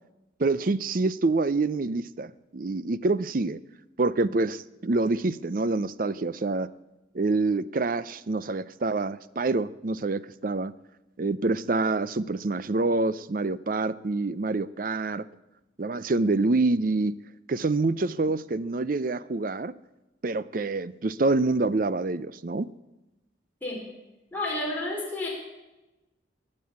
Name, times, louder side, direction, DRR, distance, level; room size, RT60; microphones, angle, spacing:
voice 1, 0.4-3.6 4.0-6.7 7.1-10.7 11.2-15.2 15.8-17.2 17.5-19.7 20.2-22.7, right 3 dB, 45° right, 17 dB, 0.5 m, -26 dB
voice 2, 24.3-25.3, left 2 dB, 10° left, -4 dB, 4.8 m, -30 dB
21.5 x 7.7 x 8.6 m, 1.0 s
head